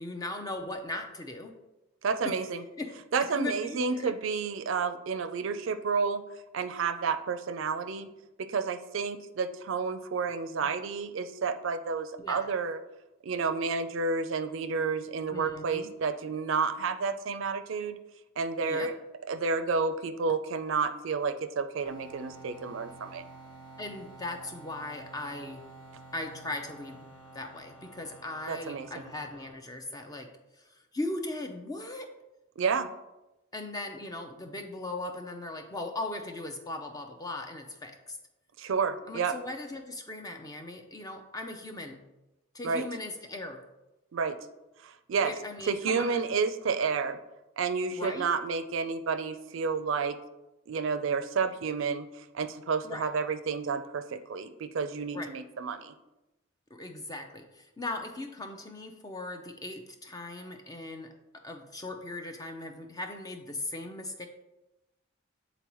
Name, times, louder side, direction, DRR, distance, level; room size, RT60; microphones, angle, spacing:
voice 1, 0.0-1.5 2.2-2.3 2.8-2.9 3.3-4.1 12.2-12.4 15.3-15.9 18.6-18.9 23.8-25.6 26.1-27.0 27.3-30.3 30.5-32.1 33.5-38.2 39.1-42.0 42.5-43.6 45.2-46.2 47.9-48.3 52.8-53.1 55.1-55.3 56.7-64.3, left 2 dB, 15° left, 4 dB, 0.5 m, -38 dB
voice 2, 2.0-2.6 3.1-6.2 6.5-8.1 8.4-12.8 13.2-18.0 18.4-18.9 19.3-23.2 28.5-28.9 32.6-32.9 38.6-39.3 42.6-42.8 44.1-44.4 44.8-45.3 45.7-47.2 47.6-50.2 50.7-55.9, right 5 dB, 70° right, 10 dB, 0.4 m, -30 dB
sound 1, 21.8-29.5, right 2 dB, 75° left, 0.9 m, -50 dB
8.4 x 3.9 x 3.0 m, 0.99 s
head